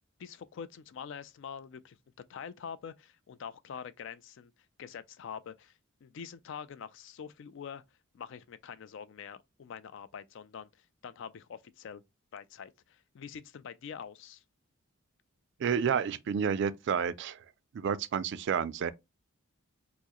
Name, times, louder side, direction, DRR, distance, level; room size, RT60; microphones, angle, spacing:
voice 1, 0.2-2.0 2.3-4.5 4.8-7.8 8.1-12.0 12.3-14.4, left 7 dB, 60° left, 0.3 m, -45 dB
voice 2, 15.6-17.4 17.7-18.9, right 7 dB, 55° right, 0.3 m, -30 dB
4.6 x 2.0 x 2.9 m
head